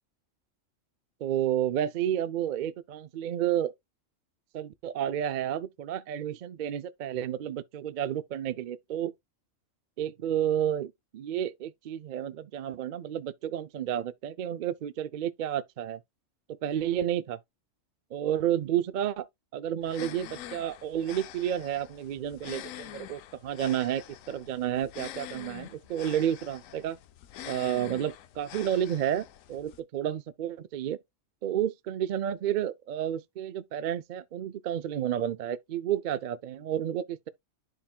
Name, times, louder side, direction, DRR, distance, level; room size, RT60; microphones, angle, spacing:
voice 1, 1.2-3.7 4.5-9.1 10.0-16.0 16.5-17.4 18.1-19.3 19.5-24.0 24.3-27.0 27.5-31.0 31.4-37.3, right 10 dB, 60° right, 0.5 m, -31 dB
sound 1, 19.8-29.8, left 12 dB, 85° left, 1.0 m, -45 dB
11.0 x 4.6 x 2.2 m
omnidirectional pair, 1.3 m